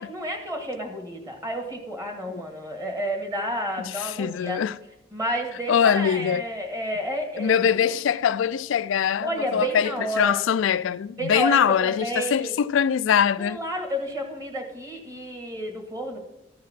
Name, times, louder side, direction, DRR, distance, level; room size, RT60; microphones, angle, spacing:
voice 1, 0.0-4.6 5.1-7.9 9.2-10.4 11.2-12.5 13.4-16.2, equal, 15° right, 1.9 m, -31 dB
voice 2, 3.8-4.8 5.7-6.4 7.4-13.6, left 8 dB, 70° left, 0.3 m, -23 dB
14.0 x 4.7 x 6.0 m
head